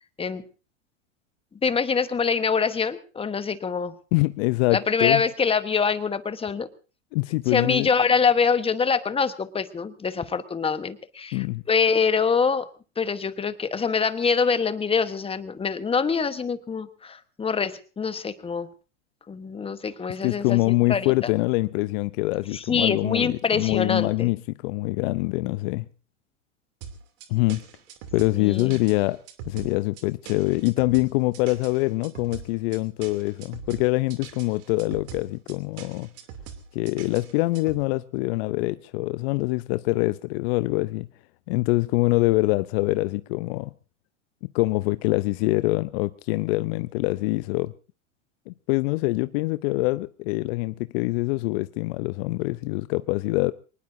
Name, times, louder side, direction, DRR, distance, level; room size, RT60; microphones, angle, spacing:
voice 1, 1.6-3.9 4.7-6.7 7.5-12.7 13.0-18.7 19.3-21.1 22.5-24.3 28.3-28.8, left 5 dB, 15° left, 1.2 m, -25 dB
voice 2, 4.1-5.2 7.1-7.9 11.3-11.6 20.2-25.9 27.3-27.6 28.1-29.2 29.5-36.1 36.7-41.1 41.5-43.7 44.5-47.7 48.5-53.5, left 22 dB, 50° left, 0.7 m, -24 dB
sound 1, 26.8-37.8, right 7 dB, 55° right, 3.1 m, -42 dB
24.0 x 19.5 x 2.7 m
hypercardioid pair, 100°, 39 cm